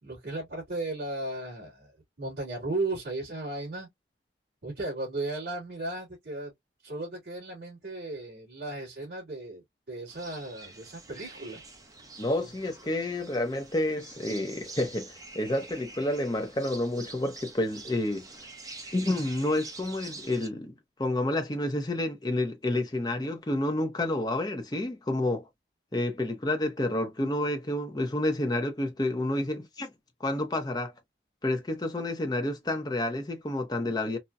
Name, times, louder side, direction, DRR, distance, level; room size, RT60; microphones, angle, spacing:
voice 1, 0.0-3.9 4.6-6.5 6.8-9.6 9.9-11.6 12.4-12.5, right 2 dB, 60° right, 2.1 m, -35 dB
sound 1, 10.1-20.5, right 3 dB, 20° right, 0.8 m, -46 dB
voice 2, 12.2-18.3 18.9-25.5 25.9-29.9 30.2-30.9 31.4-34.2, left 1 dB, 20° left, 0.7 m, -29 dB
4.1 x 2.1 x 2.3 m
head